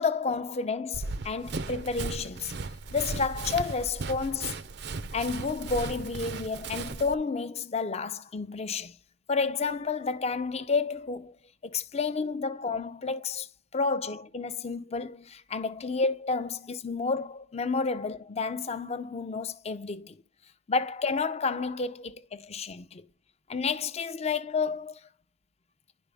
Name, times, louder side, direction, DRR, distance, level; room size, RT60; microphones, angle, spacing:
voice 1, 0.0-2.6 2.9-4.6 5.1-8.9 9.3-11.3 11.6-13.5 13.7-20.1 20.7-23.0 23.5-25.0, left 4 dB, 35° left, 0.6 m, -30 dB
Run, 0.9-7.1, right 3 dB, 60° right, 0.6 m, -36 dB
10.5 x 5.0 x 3.5 m
head